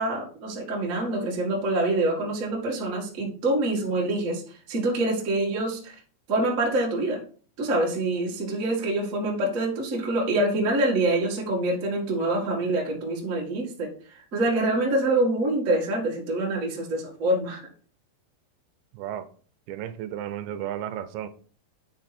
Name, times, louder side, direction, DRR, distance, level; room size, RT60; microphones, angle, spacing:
voice 1, 0.0-6.0 6.3-7.2 7.6-17.6, right 2 dB, 45° right, 1.0 m, -26 dB
voice 2, 18.9-19.3 19.7-21.3, right 11 dB, 85° right, 2.8 m, -33 dB
9.0 x 4.4 x 4.2 m
omnidirectional pair, 5.2 m